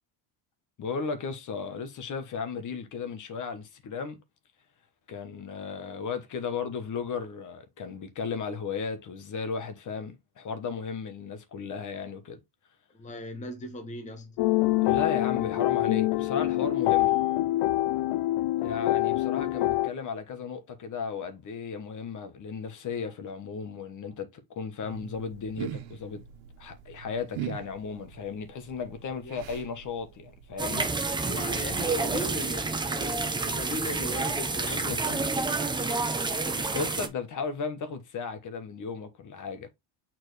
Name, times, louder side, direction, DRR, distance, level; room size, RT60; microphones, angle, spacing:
voice 1, 0.8-4.2 5.1-12.4 14.8-17.2 18.6-26.2 26.6-30.9 34.6-35.0 36.3-39.7, left 5 dB, 40° left, 1.2 m, -35 dB
voice 2, 12.9-14.4 29.2-29.4 31.3-35.4, left 2 dB, 15° left, 1.0 m, -38 dB
sound 1, 14.4-19.9, left 17 dB, 65° left, 0.5 m, -25 dB
sound 2, 24.8-32.1, right 10 dB, 90° right, 1.4 m, -43 dB
sound 3, 30.6-37.1, right 3 dB, 10° right, 0.6 m, -29 dB
6.6 x 4.4 x 3.2 m
cardioid pair, 150°, 48 cm